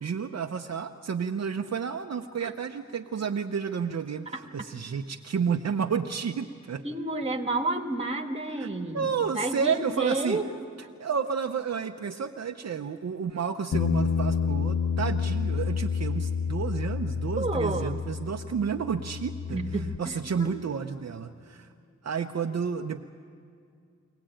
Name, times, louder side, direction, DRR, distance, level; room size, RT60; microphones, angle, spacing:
voice 1, 0.0-6.9 8.6-10.4 11.0-21.7 22.0-23.0, right 6 dB, 60° right, 4 dB, 0.7 m, -31 dB
voice 2, 6.8-9.1 9.3-10.4 17.4-18.0 19.5-20.5, right 2 dB, 20° right, 4 dB, 1.5 m, -30 dB
Bass guitar, 13.7-20.0, left 6 dB, 50° left, 0.8 m, -29 dB
23.5 x 18.0 x 8.9 m, 2.4 s
wide cardioid pair, 140°, 30 cm